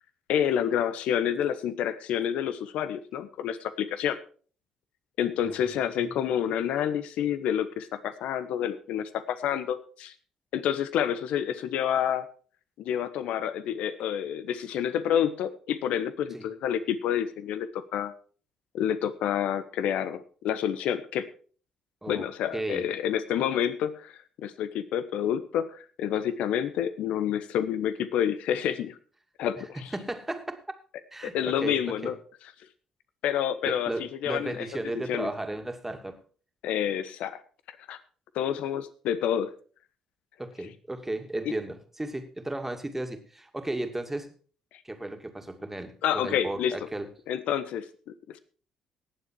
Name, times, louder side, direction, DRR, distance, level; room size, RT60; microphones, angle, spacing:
voice 1, 0.3-4.2 5.2-10.1 10.5-12.2 12.8-18.1 18.7-21.3 22.1-24.1 24.4-29.0 29.4-29.9 31.2-32.2 33.2-34.7 34.9-35.3 36.6-37.4 37.9-38.0 38.3-39.5 46.0-46.7 47.3-47.8, left 9 dB, 70° left, 13 dB, 1.1 m, -28 dB
voice 2, 22.0-22.9 29.6-29.7 29.9-30.6 31.1-32.1 33.7-36.2 40.4-44.3 44.8-47.1, right 2 dB, 15° right, 6 dB, 2.4 m, -35 dB
18.5 x 7.4 x 4.6 m, 0.42 s
hypercardioid pair, 50°, 2 cm